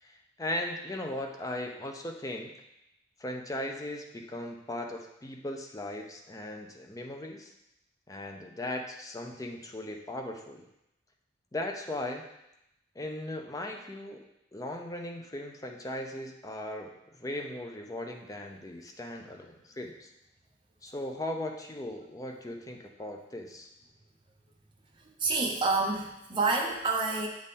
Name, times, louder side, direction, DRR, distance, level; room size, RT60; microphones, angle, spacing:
voice 1, 0.0-2.5 3.2-7.5 8.1-10.7 11.5-12.2 13.0-14.3 14.5-16.9 17.2-20.1 20.8-23.7, left 1 dB, 20° left, 2 dB, 0.6 m, -38 dB
voice 2, 24.9-27.3, right 3 dB, 25° right, -1 dB, 0.9 m, -28 dB
7.6 x 3.6 x 4.2 m, 0.85 s
head